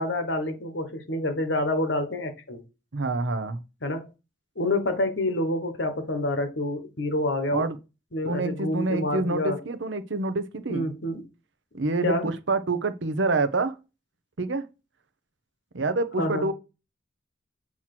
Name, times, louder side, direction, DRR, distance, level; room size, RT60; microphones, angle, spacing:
voice 1, 0.0-2.6 3.8-4.1 4.6-7.6 8.1-9.6 10.7-11.2 12.0-12.3 16.2-16.5, left 1 dB, 60° left, 1.2 m, -27 dB
voice 2, 2.9-3.6 7.5-7.8 8.2-10.9 11.7-13.8 14.4-14.6 15.7-16.5, right 3 dB, 65° right, 0.7 m, -27 dB
7.4 x 3.0 x 5.9 m
head